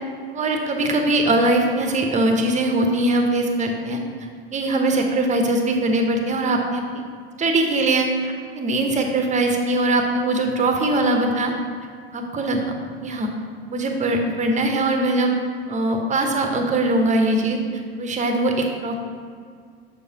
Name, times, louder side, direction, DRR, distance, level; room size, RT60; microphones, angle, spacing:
voice 1, 0.3-4.0 4.5-6.8 7.4-11.5 12.1-12.6 13.0-13.3 13.7-15.3 15.7-17.6 18.0-18.9, right 2 dB, 25° right, 4 dB, 0.9 m, -21 dB
6.8 x 6.6 x 2.9 m, 2.1 s
figure-of-eight pair, 70°, 30 cm